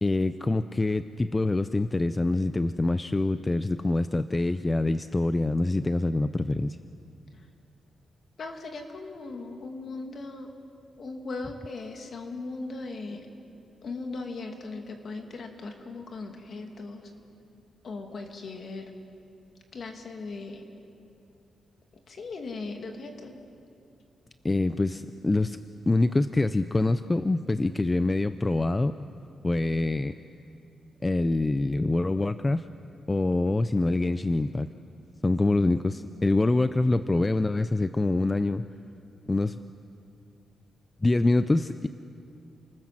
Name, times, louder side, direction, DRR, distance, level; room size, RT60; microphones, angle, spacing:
voice 1, 0.0-6.8 24.4-25.6 25.9-28.9 29.4-30.2 31.0-32.7 33.1-34.7 35.2-38.6 39.3-39.6 41.0-41.9, left 2 dB, 20° left, 12 dB, 0.5 m, -25 dB
voice 2, 8.4-10.5 11.0-13.3 13.8-17.1 17.8-18.9 19.7-20.7 22.1-23.4, left 3 dB, 50° left, 4 dB, 2.6 m, -38 dB
29.0 x 19.5 x 7.6 m, 2.6 s
cardioid pair, 130°, 0 cm